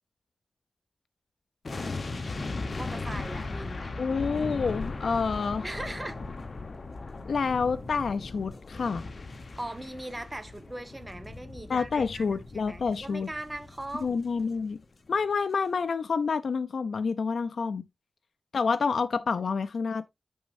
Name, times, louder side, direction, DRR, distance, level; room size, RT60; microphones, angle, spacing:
sound 1, 1.6-14.8 15.1-15.2, left 3 dB, 50° left, 1.1 m, -38 dB
voice 1, 2.8-3.9 5.6-6.2 9.6-14.2, right 1 dB, 15° right, 1.2 m, -39 dB
voice 2, 4.0-5.7 7.3-9.1 11.7-13.3 14.0-14.8 15.1-17.9 18.5-20.1, left 5 dB, 80° left, 0.4 m, -28 dB
9.5 x 6.2 x 2.6 m
wide cardioid pair, 125°, 0 cm